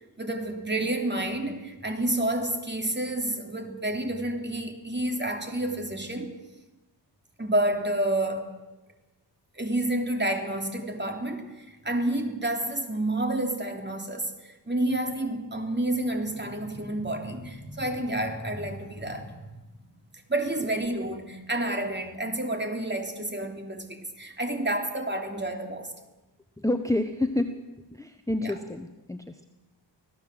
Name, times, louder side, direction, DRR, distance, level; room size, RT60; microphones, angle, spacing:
voice 1, 0.2-6.3 7.4-8.5 9.6-19.3 20.3-25.9 28.4-28.5, right 1 dB, 25° right, 3.3 m, -29 dB
voice 2, 26.6-27.6 27.9-29.4, left 1 dB, 5° left, 1.1 m, -29 dB
25.0 x 17.0 x 7.9 m
wide cardioid pair, 95°, 44 cm